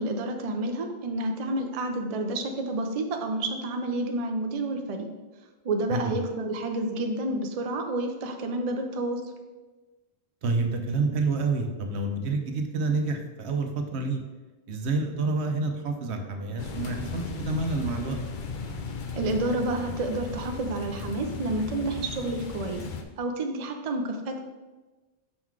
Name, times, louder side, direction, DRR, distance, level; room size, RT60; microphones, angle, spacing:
voice 1, 0.0-5.1 5.6-9.2 19.1-22.8 23.2-24.4, right 2 dB, 45° right, 4 dB, 0.5 m, -29 dB
voice 2, 5.9-6.2 10.4-14.2 14.7-18.2, right 3 dB, 70° right, 5 dB, 1.0 m, -28 dB
sound 1, 16.6-23.0, left 4 dB, 50° left, 0.7 m, -36 dB
6.2 x 3.9 x 4.6 m, 1.2 s
omnidirectional pair, 1.2 m